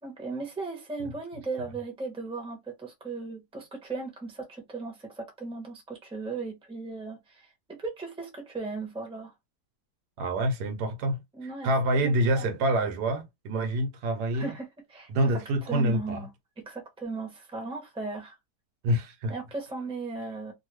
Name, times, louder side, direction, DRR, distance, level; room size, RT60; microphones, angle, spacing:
voice 1, 0.0-9.3 11.3-11.7 12.3-12.5 14.3-16.3 16.6-18.4 19.3-20.5, right 3 dB, 5° right, 0.8 m, -37 dB
voice 2, 10.2-11.2 11.6-14.5 15.1-16.2 18.8-19.3, right 1 dB, 80° right, 1.3 m, -26 dB
2.7 x 2.6 x 3.0 m
omnidirectional pair, 1.7 m